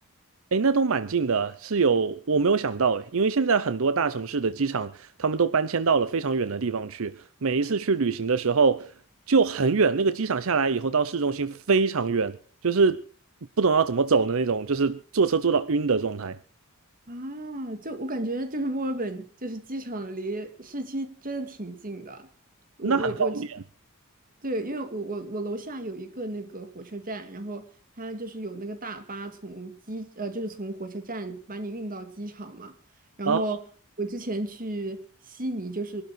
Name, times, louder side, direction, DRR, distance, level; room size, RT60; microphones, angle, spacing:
voice 1, 0.5-8.9 9.3-12.4 12.6-13.0 13.6-16.4 22.8-23.5 33.3-33.4, right 5 dB, 65° right, 0.7 m, -24 dB
voice 2, 17.1-22.3 22.8-23.4 24.4-27.7 28.0-32.7 33.2-33.6 34.0-36.0, right 1 dB, 40° right, 2.2 m, -33 dB
22.5 x 12.5 x 4.6 m
head